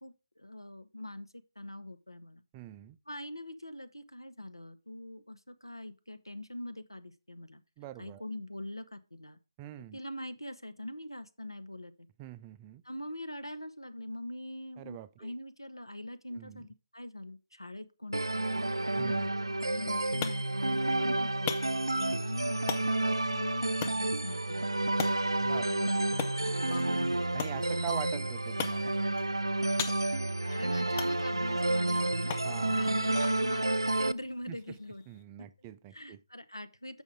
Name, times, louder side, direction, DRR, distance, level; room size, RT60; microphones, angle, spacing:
voice 1, 0.0-2.4 3.1-7.6 8.0-9.4 9.9-11.9 12.8-18.9 19.6-21.6 21.9-24.7 25.6-27.2 30.4-32.4 32.7-35.0 35.4-35.5 35.9-37.0, left 1 dB, 90° left, 1.0 m, -43 dB
voice 2, 2.5-3.0 7.8-8.3 9.6-10.0 12.2-12.8 14.8-15.3 16.3-16.7 19.0-19.4 25.4-25.7 27.3-28.9 32.4-32.9 34.5-34.8 35.1-36.2, right 12 dB, 15° right, 0.3 m, -44 dB
sound 1, 18.1-34.1, right 2 dB, 80° right, 0.4 m, -30 dB
sound 2, 19.6-35.2, left 7 dB, 20° left, 0.6 m, -43 dB
7.5 x 5.5 x 4.9 m
figure-of-eight pair, 150°, 2 cm